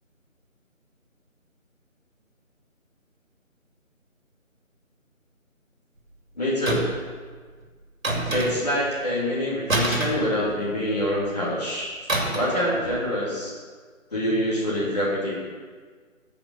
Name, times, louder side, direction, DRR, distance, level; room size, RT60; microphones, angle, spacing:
voice 1, 6.3-6.9 8.3-11.9 12.3-13.5 14.1-15.4, equal, 30° left, -7 dB, 3.3 m, -25 dB
sound 1, 6.7-7.1 8.0-8.8 9.7-10.9 12.1-12.6 12.9-13.1, right 2 dB, 75° right, 2.7 m, -26 dB
15.5 x 6.1 x 5.8 m, 1.5 s
figure-of-eight pair, 180°, 41 cm